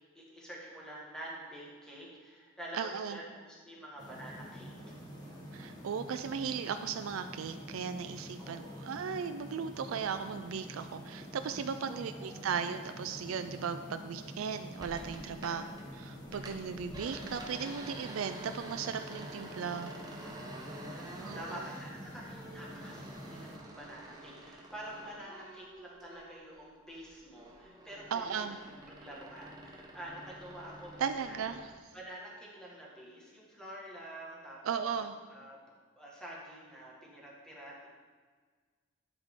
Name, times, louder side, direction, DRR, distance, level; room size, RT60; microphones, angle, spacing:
voice 1, 0.2-4.7 8.4-8.9 12.0-12.5 15.4-15.8 20.2-28.6 28.9-31.4 31.9-35.0 35.3-35.7 36.0-37.9, right 1 dB, 5° left, -5 dB, 1.7 m, -48 dB
voice 2, 2.7-3.2 5.5-15.7 15.9-20.0 21.2-21.6 28.1-28.6 31.0-31.6 34.6-35.1, right 6 dB, 75° right, 9 dB, 0.4 m, -36 dB
sound 1, 4.0-23.6, equal, 20° left, 1.2 m, -47 dB
sound 2, 14.8-15.9 16.2-26.5 26.9-31.7, right 1 dB, 20° right, 0.9 m, -49 dB
11.5 x 4.9 x 3.7 m, 1.5 s
head